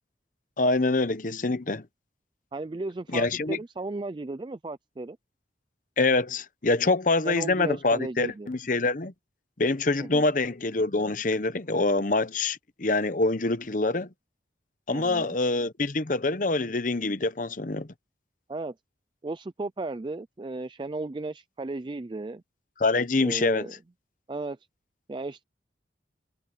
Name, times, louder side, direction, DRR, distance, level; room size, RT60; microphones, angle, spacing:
voice 1, 0.6-1.8 3.1-3.6 6.0-9.1 9.6-14.1 14.9-17.9 22.8-23.7, left 3 dB, 45° left, 0.9 m, -25 dB
voice 2, 2.5-5.2 7.2-8.5 10.0-10.3 14.9-15.4 18.5-18.7 19.2-22.4 23.2-23.7 24.3-24.6 25.1-25.4, right 2 dB, 25° right, 0.4 m, -35 dB
head